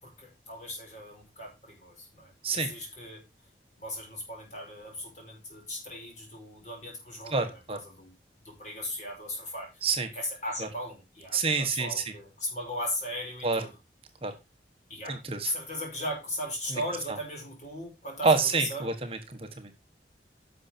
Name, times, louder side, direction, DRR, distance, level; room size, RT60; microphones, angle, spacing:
voice 1, 0.0-3.2 3.8-8.1 8.4-9.8 10.1-13.7 14.9-15.2 15.5-18.9, left 1 dB, 40° left, 0 dB, 5.2 m, -37 dB
voice 2, 7.3-7.8 9.8-10.1 11.3-12.1 13.4-13.6 14.2-14.3 15.1-15.5 16.7-16.8 18.2-19.9, right 4 dB, 30° right, 5 dB, 1.3 m, -28 dB
11.0 x 6.7 x 4.4 m, 0.26 s
head